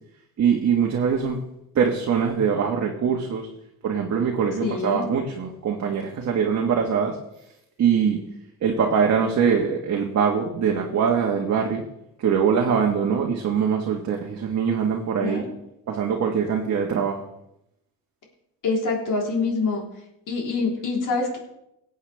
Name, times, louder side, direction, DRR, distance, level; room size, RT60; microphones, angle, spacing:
voice 1, 0.4-1.4 1.7-3.5 3.8-7.2 7.8-8.2 8.6-11.8 12.2-15.4 15.9-17.2, right 7 dB, 45° right, 0 dB, 1.5 m, -23 dB
voice 2, 4.6-5.1 15.2-15.4 18.6-19.8 20.3-21.4, left 4 dB, 50° left, -1 dB, 3.8 m, -25 dB
18.0 x 8.3 x 3.5 m, 0.83 s
cardioid pair, 120°, 39 cm